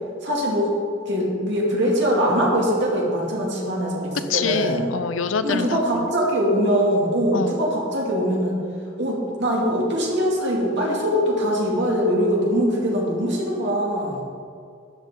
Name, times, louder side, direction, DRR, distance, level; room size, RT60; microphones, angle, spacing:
voice 1, 0.2-0.7 1.1-4.9 5.4-8.6 9.0-14.2, equal, 60° right, -3 dB, 2.5 m, -22 dB
voice 2, 4.3-6.1 7.3-7.6, left 5 dB, 75° left, 11 dB, 0.6 m, -26 dB
13.0 x 9.4 x 3.9 m, 2.4 s
head